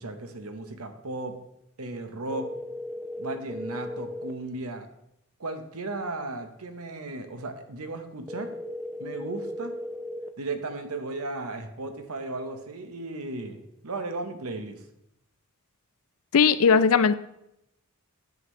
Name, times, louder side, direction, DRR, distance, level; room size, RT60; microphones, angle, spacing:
voice 1, 0.0-1.4 1.8-2.5 3.2-4.9 5.4-8.5 9.0-9.8 10.4-14.8, right 2 dB, 85° right, 7 dB, 1.0 m, -35 dB
sound 1, 2.3-4.3 8.3-10.3, left 1 dB, 10° right, 0.5 m, -36 dB
voice 2, 16.3-17.1, left 5 dB, 75° left, 14 dB, 0.5 m, -18 dB
9.3 x 7.3 x 3.2 m, 0.81 s
head